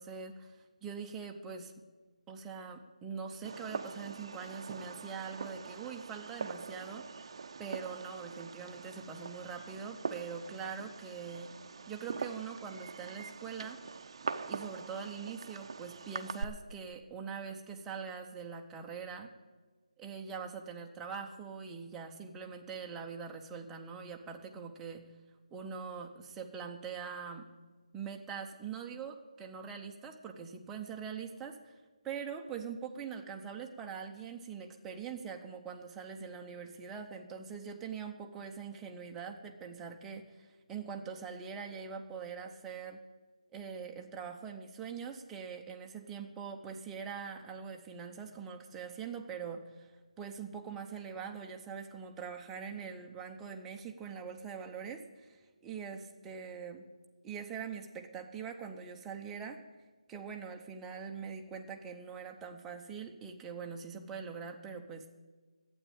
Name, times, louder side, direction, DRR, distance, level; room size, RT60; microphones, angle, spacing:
voice 1, 0.0-1.7 2.3-7.3 7.6-11.5 11.9-13.8 14.5-19.3 20.0-25.0 25.5-27.5 27.9-31.8 32.0-43.0 43.5-49.9 50.2-56.9 57.2-59.6 60.1-65.1, right 6 dB, 10° right, 2 dB, 0.8 m, -43 dB
Fireworks, 3.4-16.4, right 5 dB, 45° right, 0.7 m, -43 dB
12.0 x 8.8 x 8.5 m, 1.4 s
figure-of-eight pair, 160°, 4 cm